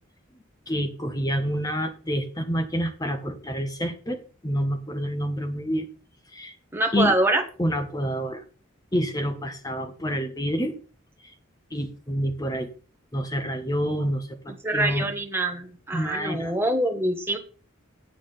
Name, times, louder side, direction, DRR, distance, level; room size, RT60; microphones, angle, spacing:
voice 1, 0.7-5.9 6.3-6.5 6.9-7.1 7.6-8.4 8.9-10.8 11.7-12.7 13.1-15.1 15.9-16.6, equal, 20° left, 7 dB, 1.3 m, -28 dB
voice 2, 6.7-7.4 14.6-17.4, right 1 dB, 10° right, 3 dB, 1.5 m, -25 dB
9.1 x 7.4 x 5.6 m, 0.37 s
head